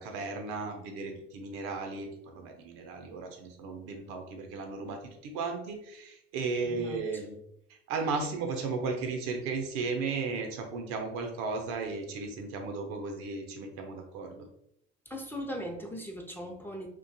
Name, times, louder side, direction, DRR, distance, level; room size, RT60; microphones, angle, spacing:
voice 1, 0.0-7.4 7.7-14.5, right 4 dB, 75° right, 4 dB, 0.6 m, -35 dB
voice 2, 6.6-7.0 15.1-16.9, equal, 5° left, 1 dB, 0.5 m, -39 dB
2.5 x 2.2 x 2.6 m, 0.77 s
hypercardioid pair, 60°, 32 cm